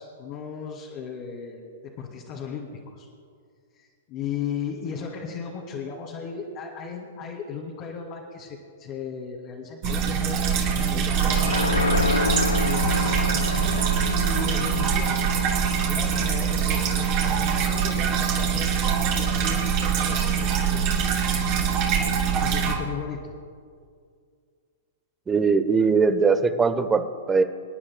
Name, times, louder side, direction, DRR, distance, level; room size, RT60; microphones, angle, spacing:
voice 1, 0.0-3.1 3.7-11.9 12.6-15.3 15.9-20.5 20.7-21.4 22.3-23.3, left 6 dB, 45° left, -3 dB, 2.0 m, -36 dB
sound 1, 9.8-22.7, right 7 dB, 45° right, 2.6 m, -23 dB
sound 2, 11.2-18.0 18.4-18.5, left 4 dB, 85° left, 0.5 m, -30 dB
voice 2, 25.3-27.4, right 4 dB, 15° right, 10 dB, 0.8 m, -21 dB
28.0 x 9.7 x 2.2 m, 2.2 s
hypercardioid pair, 115°, 0 cm